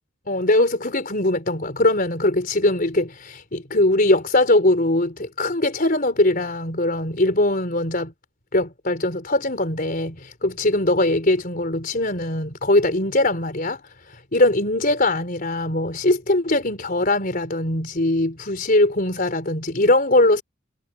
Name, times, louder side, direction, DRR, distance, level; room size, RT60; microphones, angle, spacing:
voice 1, 0.3-8.1 8.5-13.8 14.3-20.4, left 1 dB, 45° left, 4.4 m, -21 dB
head